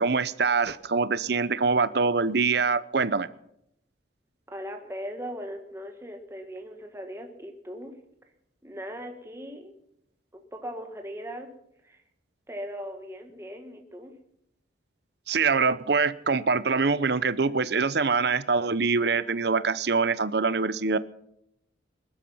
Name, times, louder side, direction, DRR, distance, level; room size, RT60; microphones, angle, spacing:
voice 1, 0.0-3.3 15.3-21.0, right 4 dB, 55° right, 16 dB, 0.7 m, -24 dB
voice 2, 4.5-7.9 8.6-9.7 10.3-11.5 11.8-12.0 12.5-14.1, equal, 15° right, 4 dB, 1.4 m, -39 dB
21.0 x 12.0 x 5.6 m, 0.77 s
head